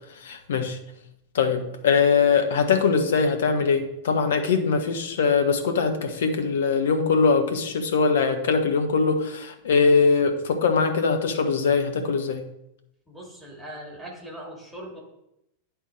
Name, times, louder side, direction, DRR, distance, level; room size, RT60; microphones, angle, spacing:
voice 1, 0.2-0.8 1.3-12.4, left 5 dB, 60° left, 7 dB, 1.0 m, -22 dB
voice 2, 13.1-15.0, right 1 dB, ahead, -2 dB, 2.5 m, -40 dB
10.0 x 3.6 x 4.5 m, 0.83 s
figure-of-eight pair, 90°, 0 cm